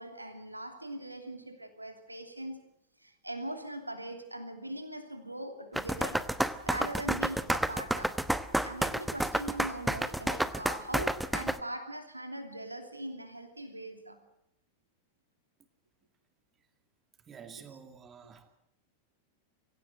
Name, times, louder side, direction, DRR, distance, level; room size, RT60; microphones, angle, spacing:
voice 1, 0.0-2.7 3.0-6.2 6.6-8.2 8.6-14.2, right 1 dB, 85° right, 6 dB, 2.9 m, -41 dB
sound 1, 5.7-11.6, right 1 dB, 5° right, 1.0 m, -30 dB
voice 2, 17.2-18.6, right 7 dB, 25° right, 7 dB, 2.2 m, -49 dB
25.0 x 16.5 x 7.9 m, 0.79 s
figure-of-eight pair, 90°, 0 cm